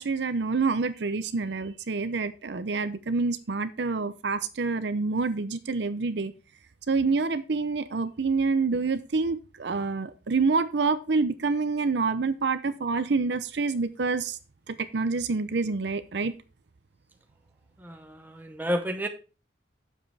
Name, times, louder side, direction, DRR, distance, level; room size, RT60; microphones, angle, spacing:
voice 1, 0.0-6.3 6.9-14.4 14.9-16.3, right 4 dB, 65° right, 12 dB, 0.6 m, -27 dB
voice 2, 17.8-19.1, equal, 10° right, 5 dB, 0.9 m, -31 dB
8.6 x 7.2 x 3.4 m, 0.33 s
head